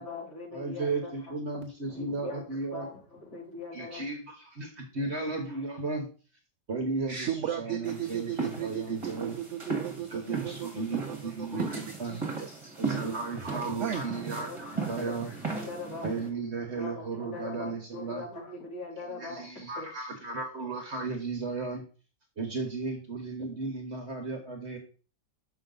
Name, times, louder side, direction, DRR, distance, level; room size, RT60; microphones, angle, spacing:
voice 1, 0.0-1.3 1.9-4.1 13.9-14.0 14.4-16.1 16.7-19.4 19.8-19.9, left 3 dB, 55° left, -6 dB, 3.7 m, -41 dB
voice 2, 0.5-2.9 3.7-6.1 6.7-7.3 7.6-9.3 9.9-12.2 12.8-15.3 16.0-18.2 19.1-21.8 22.4-24.8, right 3 dB, 45° right, 3 dB, 1.2 m, -35 dB
voice 3, 7.1-10.7 11.1-12.7 13.8-14.1, right 10 dB, 65° right, 7 dB, 0.7 m, -36 dB
sound 1, 7.8-16.3, right 4 dB, 20° right, 1.6 m, -36 dB
6.7 x 5.5 x 3.8 m, 0.36 s
omnidirectional pair, 1.9 m